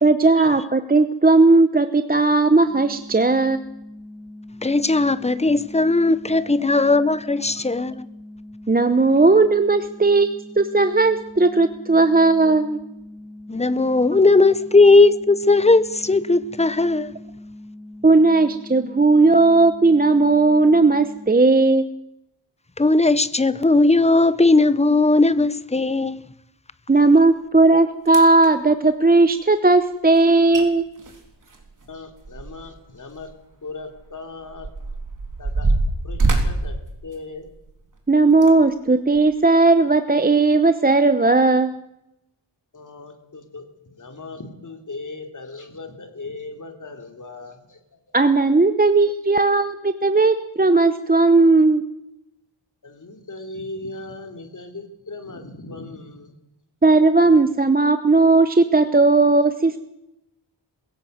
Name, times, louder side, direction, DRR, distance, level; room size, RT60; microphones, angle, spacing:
voice 1, 0.0-3.6 8.7-12.8 18.0-21.9 26.9-30.8 38.1-41.7 48.1-51.8 56.8-59.8, right 3 dB, 20° right, 0.9 m, -16 dB
sound 1, 2.6-21.3, left 1 dB, 75° right, 3.3 m, -41 dB
voice 2, 4.6-8.1 13.5-17.2 22.8-26.3, left 3 dB, 15° left, 0.8 m, -17 dB
sound 2, 27.6-27.7 28.1-28.5 30.2-30.3 30.5-30.6 31.0-32.8 33.1-33.3 34.0-37.7 38.3-38.5 39.1-39.3, right 2 dB, 45° right, 3.6 m, -24 dB
voice 3, 31.8-33.3 33.6-34.7 35.4-35.7 36.0-36.8 37.0-37.5 42.7-48.0 52.8-56.3, left 3 dB, 40° left, 3.1 m, -38 dB
22.0 x 16.5 x 7.9 m
wide cardioid pair, 130°, 45 cm